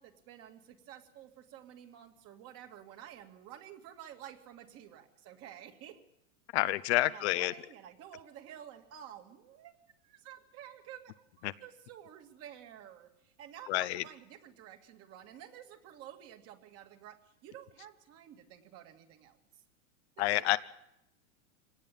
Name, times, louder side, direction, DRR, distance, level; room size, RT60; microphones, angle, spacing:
voice 1, 0.0-6.0 7.0-9.7 10.0-19.6 20.2-20.6, right 10 dB, 35° right, 2.5 m, -51 dB
voice 2, 6.5-7.5 13.7-14.0 20.2-20.6, left 18 dB, 50° left, 0.8 m, -28 dB
24.5 x 18.0 x 8.7 m
supercardioid pair, 145°, 42 cm